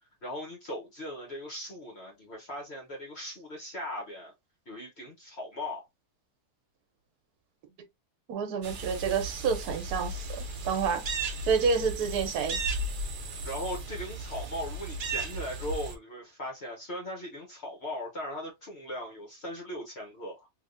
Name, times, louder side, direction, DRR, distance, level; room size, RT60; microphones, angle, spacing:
voice 1, 0.2-4.3 4.7-5.9 13.4-20.5, equal, 50° left, 1.1 m, -39 dB
voice 2, 8.3-11.0 11.4-12.6, right 5 dB, 75° right, 1.3 m, -29 dB
sound 1, 8.6-15.9, right 2 dB, 55° right, 0.5 m, -35 dB
3.4 x 2.8 x 2.5 m
omnidirectional pair, 1.6 m